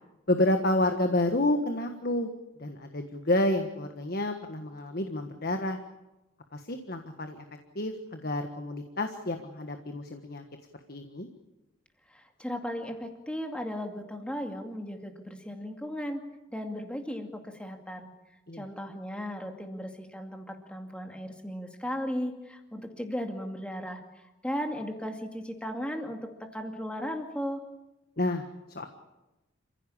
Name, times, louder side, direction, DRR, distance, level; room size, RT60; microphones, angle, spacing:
voice 1, 0.3-2.3 2.6-5.8 6.5-7.4 7.7-10.4 10.9-11.3 18.5-19.0 28.2-28.5 28.7-28.9, left 1 dB, 50° left, 6 dB, 1.5 m, -29 dB
voice 2, 12.1-16.2 16.5-18.1 18.5-24.0 24.4-27.6, equal, 5° left, 3 dB, 2.3 m, -36 dB
28.0 x 16.0 x 8.6 m, 1.0 s
head